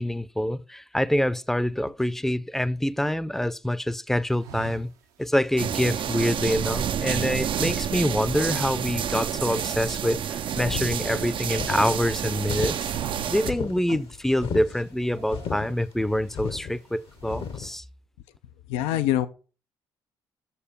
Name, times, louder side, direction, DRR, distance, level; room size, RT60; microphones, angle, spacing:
voice 1, 0.0-4.9 5.2-12.9 13.3-17.8, left 1 dB, 5° left, 0.6 m, -26 dB
sound 1, 4.4-5.8 6.4-7.5 7.7-7.9 8.3-9.2 9.5-9.7 10.0-11.7 12.1-12.4 12.7-13.7 14.1-14.2 15.0-16.1 16.6-16.9 17.2-17.8, right 7 dB, 80° right, 0.9 m, -43 dB
sound 2, 5.6-13.5, right 9 dB, 50° right, 0.5 m, -29 dB
sound 3, 10.6-17.7, left 7 dB, 60° left, 1.0 m, -35 dB
voice 2, 18.7-19.3, left 13 dB, 75° left, 0.5 m, -24 dB
7.0 x 6.9 x 5.2 m
hypercardioid pair, 50°, 11 cm